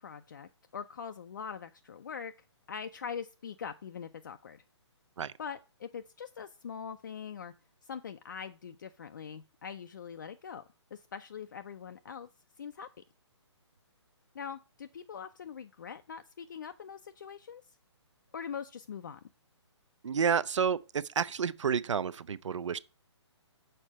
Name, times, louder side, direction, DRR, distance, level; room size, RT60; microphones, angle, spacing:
voice 1, 0.0-2.3 2.7-4.6 5.4-7.5 7.8-10.6 10.9-12.3 12.6-12.9 14.3-17.6 18.3-19.2, left 7 dB, 40° left, 0.4 m, -42 dB
voice 2, 20.0-22.8, right 6 dB, 80° right, 0.5 m, -30 dB
6.6 x 4.4 x 6.2 m
hypercardioid pair, 170°, 15 cm